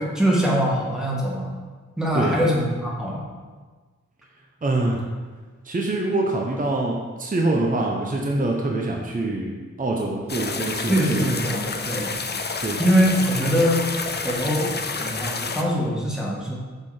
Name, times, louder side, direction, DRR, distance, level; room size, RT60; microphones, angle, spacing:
voice 1, 0.0-1.5 2.0-3.2 10.9-12.1 12.8-13.8 14.2-16.5, equal, ahead, -4 dB, 1.6 m, -23 dB
voice 2, 4.6-5.1 5.6-11.3 12.6-12.8, right 2 dB, 30° right, 0 dB, 0.7 m, -25 dB
sound 1, 10.3-15.6, left 4 dB, 35° left, 0.5 m, -29 dB
6.5 x 3.9 x 4.8 m, 1.4 s
wide cardioid pair, 75°, 30 cm